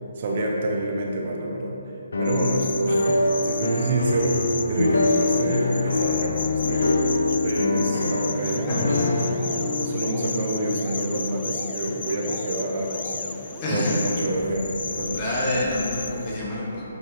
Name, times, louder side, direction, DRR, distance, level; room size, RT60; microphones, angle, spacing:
voice 1, 0.2-1.8 2.2-4.4 4.7-7.0 7.3-9.2 9.8-15.2, right 1 dB, 45° right, 0 dB, 0.7 m, -28 dB
sound 1, 2.1-12.1, left 2 dB, 90° left, 0.8 m, -25 dB
sound 2, 2.2-16.4, left 4 dB, 70° left, 0.4 m, -34 dB
sound 3, 8.4-14.2, equal, 5° right, 0.4 m, -43 dB
voice 2, 8.7-9.1 9.3-9.4 13.6-14.0 15.1-16.8, left 1 dB, 25° left, -6 dB, 1.4 m, -27 dB
8.0 x 4.3 x 3.4 m, 2.8 s
hypercardioid pair, 165°, 0 cm